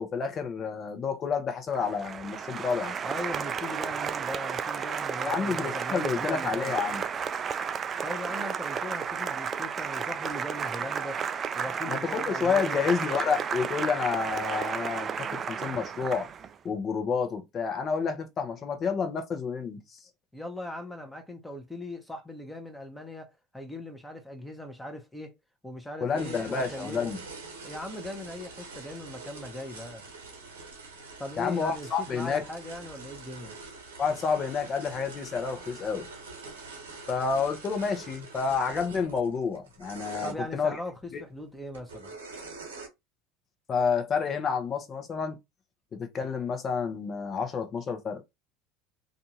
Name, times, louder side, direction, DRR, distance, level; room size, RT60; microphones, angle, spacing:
voice 1, 0.0-3.0 5.3-7.0 11.9-16.3 16.6-20.0 26.0-27.2 31.4-32.4 34.0-36.1 37.1-40.8 41.1-41.2 43.7-45.4 45.9-48.4, left 5 dB, 40° left, 0.8 m, -29 dB
Applause, 1.7-16.5, right 7 dB, 35° right, 0.3 m, -33 dB
voice 2, 3.0-6.7 8.0-11.2 11.5-12.9 20.3-25.3 25.6-27.1 27.6-30.0 31.2-33.5 40.2-42.1, left 1 dB, 5° left, 0.8 m, -39 dB
sound 1, 26.1-40.3 41.7-42.9, right 3 dB, 90° right, 0.9 m, -44 dB
2.6 x 2.4 x 2.8 m
hypercardioid pair, 75°, 0 cm